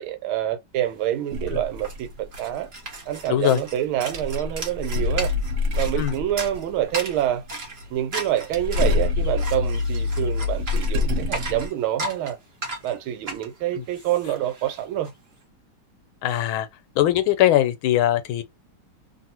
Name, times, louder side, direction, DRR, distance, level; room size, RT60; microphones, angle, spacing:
voice 1, 0.0-2.1 2.4-2.7 3.1-5.3 5.7-7.4 7.9-12.4 12.8-15.1, right 12 dB, 85° right, 1.6 m, -27 dB
sound 1, 1.0-1.1 1.3-15.1, right 2 dB, 40° right, 0.9 m, -36 dB
sound 2, 1.3-2.9 3.3-3.4 3.9-7.9 8.2-11.7, left 3 dB, 65° right, 1.1 m, -26 dB
voice 2, 3.3-3.6 6.0-6.1 13.8-13.9 16.2-16.7 17.0-18.4, left 13 dB, 80° left, 1.4 m, -21 dB
3.0 x 2.7 x 2.8 m
omnidirectional pair, 2.3 m